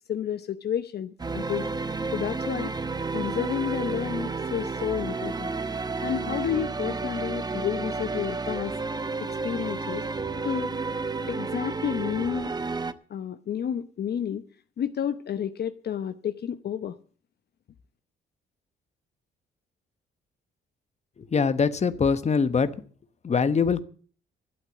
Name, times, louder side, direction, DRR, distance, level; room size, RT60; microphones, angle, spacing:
voice 1, 0.1-1.7 2.1-2.7 3.1-5.5 6.0-8.7 9.2-10.0 10.4-10.8 11.3-12.5 13.1-14.4 14.8-17.0, left 9 dB, 55° left, 0.8 m, -30 dB
sound 1, 1.2-12.9, right 4 dB, 20° right, 0.8 m, -31 dB
voice 2, 21.3-22.7 23.2-23.8, left 5 dB, 35° left, 1.1 m, -23 dB
12.0 x 8.1 x 8.1 m
cardioid pair, 90°, 20 cm